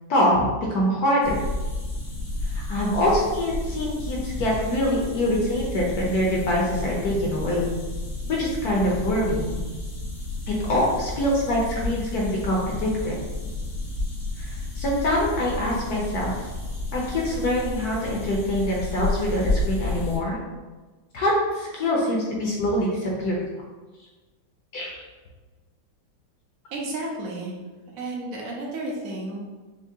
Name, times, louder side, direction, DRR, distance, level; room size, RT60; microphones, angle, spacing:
voice 1, 0.1-1.4 2.5-7.7 8.4-9.7 10.7-13.1 14.4-16.4 16.9-20.4 21.1-23.4 24.7-25.0, left 1 dB, 65° left, -3 dB, 1.0 m, -24 dB
sound 1, 1.2-20.2, left 2 dB, 85° left, 2.1 m, -31 dB
voice 2, 26.7-27.5 28.0-29.4, right 2 dB, 60° right, -3 dB, 0.9 m, -32 dB
5.9 x 2.2 x 2.7 m, 1.3 s
omnidirectional pair, 2.3 m